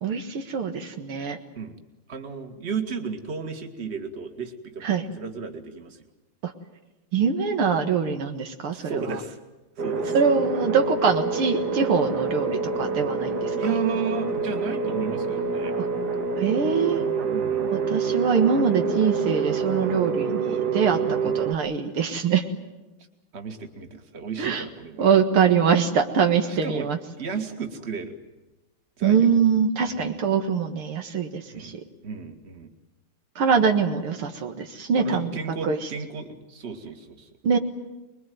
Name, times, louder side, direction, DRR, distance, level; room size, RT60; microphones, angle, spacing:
voice 1, 0.0-1.4 4.8-5.0 6.4-6.5 7.1-9.2 10.1-13.5 15.8-15.9 16.4-17.1 17.7-22.4 24.4-24.6 25.0-27.0 29.0-31.7 33.4-35.3 35.6-35.8 37.4-37.6, right 6 dB, 80° right, 5 dB, 2.5 m, -23 dB
voice 2, 2.1-6.0 8.7-9.4 9.8-10.2 13.6-15.7 17.3-17.7 21.2-21.4 22.2-22.3 23.3-25.0 26.5-26.9 27.2-28.1 29.0-29.4 29.9-30.2 31.5-31.7 32.0-32.7 34.9-37.3, right 5 dB, 30° right, 5 dB, 2.1 m, -33 dB
sound 1, 9.8-21.5, right 5 dB, 50° right, 1.9 m, -27 dB
25.0 x 22.0 x 9.3 m, 1.1 s
omnidirectional pair, 2.4 m